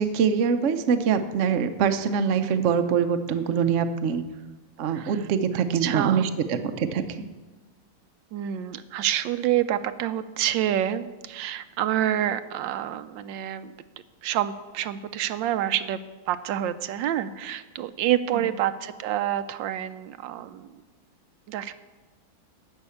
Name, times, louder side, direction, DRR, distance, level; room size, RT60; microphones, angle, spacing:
voice 1, 0.0-4.2 4.8-7.3 18.3-18.4, right 7 dB, 60° right, 8 dB, 0.8 m, -24 dB
voice 2, 4.8-5.2 5.8-6.2 8.3-13.7 14.2-20.8 21.5-21.7, right 11 dB, 85° right, 12 dB, 1.3 m, -28 dB
12.0 x 5.7 x 8.4 m, 1.2 s
omnidirectional pair, 2.0 m